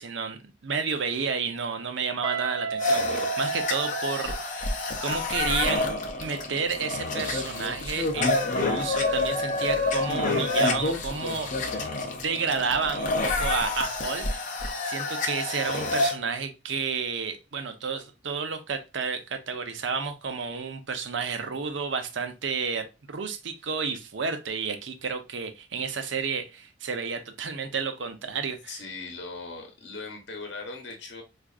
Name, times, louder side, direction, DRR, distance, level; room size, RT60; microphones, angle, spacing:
voice 1, 0.0-5.9 6.2-11.9 12.1-14.3 14.8-28.7, right 5 dB, 70° right, 8 dB, 0.6 m, -31 dB
Guitar, 2.2-5.1, right 5 dB, 20° right, 0.3 m, -32 dB
sound 1, 2.8-16.1, left 2 dB, 40° left, 0.6 m, -28 dB
voice 2, 28.7-31.2, left 3 dB, 60° left, 3 dB, 0.9 m, -39 dB
4.6 x 2.5 x 2.4 m, 0.26 s
head